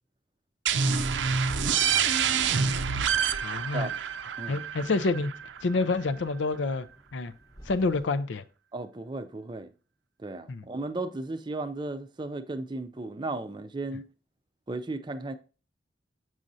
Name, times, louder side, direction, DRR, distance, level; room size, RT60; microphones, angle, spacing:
sound 1, 0.7-6.1, right 6 dB, 80° right, 0.5 m, -27 dB
voice 1, 0.8-1.8 3.0-3.1 3.4-3.9 4.5-5.3 5.6-6.9 7.1-7.3 7.7-8.4 10.5-10.6, left 3 dB, 85° left, 0.5 m, -29 dB
sound 2, 1.1-8.1, equal, 20° left, 0.9 m, -48 dB
voice 2, 8.7-9.7 10.2-14.1 14.7-15.3, right 2 dB, 25° right, 0.5 m, -35 dB
7.4 x 6.3 x 2.6 m
head